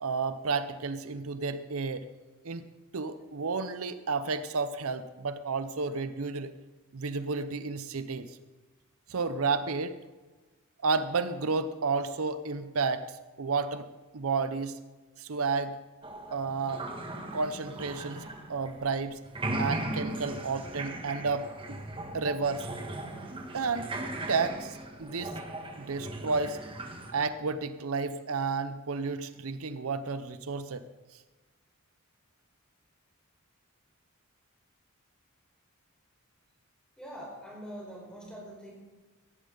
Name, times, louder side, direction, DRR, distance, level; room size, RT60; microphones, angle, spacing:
voice 1, 0.0-2.1 2.4-2.6 2.9-6.5 6.9-8.4 9.1-10.0 10.8-13.1 13.4-13.9 14.1-14.8 15.2-15.8 16.3-16.8 17.3-18.2 18.5-19.2 19.6-21.8 22.1-22.6 23.5-23.9 24.3-25.3 25.8-26.6 27.1-30.8, right 4 dB, 75° right, 12 dB, 0.7 m, -31 dB
sound 1, 16.0-19.0 19.2-27.1, right 1 dB, 25° right, 1.5 m, -38 dB
voice 2, 37.0-38.7, equal, 5° left, -3 dB, 4.8 m, -43 dB
17.5 x 13.5 x 3.9 m, 1.2 s
head